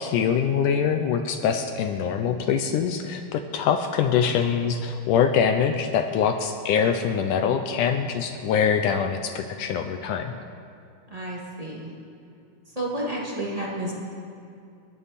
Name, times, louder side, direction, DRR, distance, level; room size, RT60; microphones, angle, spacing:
voice 1, 0.0-10.3, left 7 dB, 85° left, 6 dB, 1.8 m, -24 dB
voice 2, 11.1-11.9 12.7-14.0, right 1 dB, 20° right, -4 dB, 1.0 m, -31 dB
30.0 x 11.5 x 4.2 m, 2.5 s
omnidirectional pair, 4.5 m